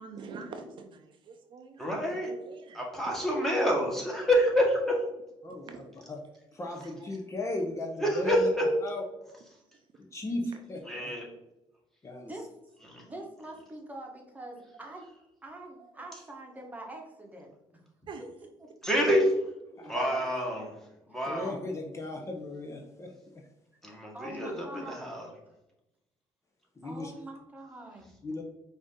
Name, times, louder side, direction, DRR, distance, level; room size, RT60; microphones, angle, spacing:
voice 1, 0.0-3.2 5.6-5.9 7.0-7.1 9.7-9.9 15.8-16.0 16.6-16.7 18.1-18.2, right 4 dB, 55° right, 5 dB, 0.5 m, -46 dB
voice 2, 1.8-2.3 2.7-5.0 8.0-8.6 10.9-11.2 12.8-13.0 18.8-19.4 19.9-21.5 23.8-25.3, equal, 5° left, -2 dB, 1.5 m, -27 dB
voice 3, 6.5-8.5 8.8-9.0 10.0-11.1 12.0-12.3 19.8-19.9 21.2-23.5 24.7-24.8 26.8-27.1 28.2-28.4, left 2 dB, 30° left, 3 dB, 0.7 m, -36 dB
voice 4, 13.1-15.0 15.4-17.8 19.7-20.2 24.1-25.1 26.8-28.1, right 2 dB, 15° right, 1 dB, 1.1 m, -44 dB
4.9 x 2.7 x 3.7 m, 0.89 s
cardioid pair, 100°, 10 cm